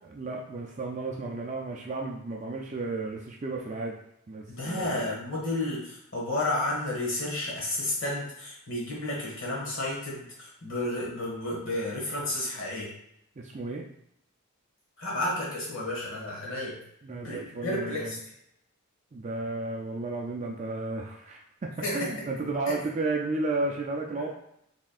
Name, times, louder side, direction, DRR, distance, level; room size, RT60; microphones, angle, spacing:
voice 1, 0.0-4.0 4.3-5.0 13.4-13.9 17.0-18.2 19.1-24.3, right 3 dB, 30° right, 0 dB, 0.4 m, -33 dB
voice 2, 4.5-12.9 15.0-16.8 17.1-18.2 21.8-22.1 22.7-22.8 24.2-24.3, left 1 dB, 55° left, -4 dB, 1.5 m, -32 dB
4.2 x 3.6 x 2.4 m, 0.74 s
head